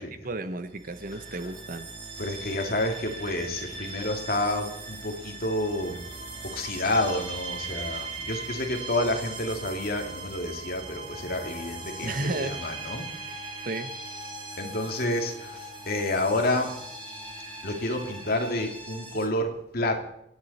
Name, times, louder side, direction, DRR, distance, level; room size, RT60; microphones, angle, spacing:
voice 1, 0.0-1.9 12.0-12.6 13.6-13.9, right 2 dB, 50° right, 11 dB, 0.9 m, -33 dB
sound 1, 0.7-19.3, right 2 dB, 30° right, 2.2 m, -39 dB
voice 2, 2.2-6.0 6.5-13.0 14.6-16.7 17.6-20.0, left 1 dB, 60° left, 3 dB, 2.5 m, -29 dB
25.5 x 9.7 x 4.2 m, 0.78 s
head